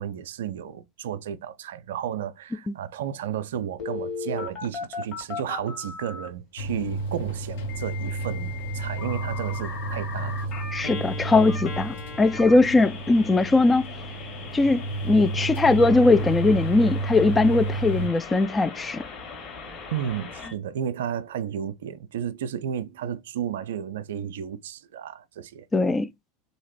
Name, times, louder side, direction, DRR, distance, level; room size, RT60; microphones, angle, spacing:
voice 1, 0.0-10.4 19.9-25.7, right 9 dB, 65° right, 0.3 m, -32 dB
Telephone, 3.8-6.3 7.7-20.5, left 5 dB, 40° left, 1.5 m, -38 dB
sound 1, 6.6-18.1, right 2 dB, 65° left, 0.8 m, -31 dB
voice 2, 10.7-13.8 14.5-19.0 25.7-26.1, left 3 dB, 15° left, 0.3 m, -20 dB
3.2 x 2.7 x 2.9 m
figure-of-eight pair, 80°, 0 cm